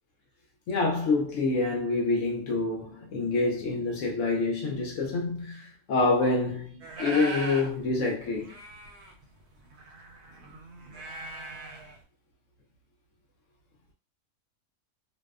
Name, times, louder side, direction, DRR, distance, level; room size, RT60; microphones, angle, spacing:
voice 1, 0.7-8.6, left 3 dB, 70° left, 0.8 m, -27 dB
sound 1, 6.8-7.7 8.1-8.2 8.3-12.0, right 2 dB, 85° right, 1.1 m, -39 dB
2.6 x 2.1 x 2.3 m
omnidirectional pair, 1.6 m